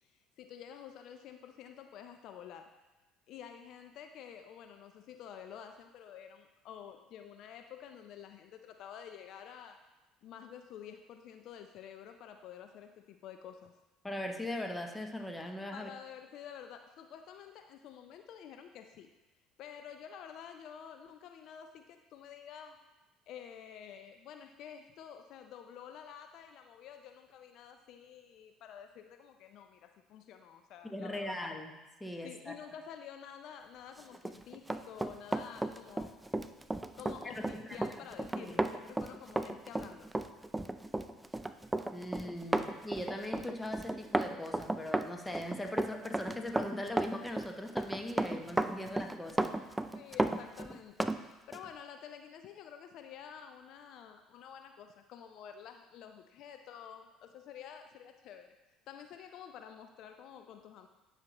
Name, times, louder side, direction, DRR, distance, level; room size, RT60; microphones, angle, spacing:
voice 1, 0.0-2.7 3.3-9.8 10.2-13.7 15.7-19.1 19.6-22.8 23.3-31.5 32.2-36.2 37.0-40.1 42.5-42.7 49.9-58.5 58.9-60.9, left 8 dB, 60° left, 6 dB, 0.4 m, -50 dB
voice 2, 14.0-15.9 30.8-31.7 32.0-32.5 37.2-37.6 38.3-38.6 41.9-49.6, left 1 dB, 10° left, 4 dB, 1.0 m, -40 dB
Run, 34.1-51.2 51.5-51.7, right 1 dB, 10° right, 0.4 m, -34 dB
9.6 x 5.7 x 3.0 m, 1.1 s
hypercardioid pair, 65°, 0 cm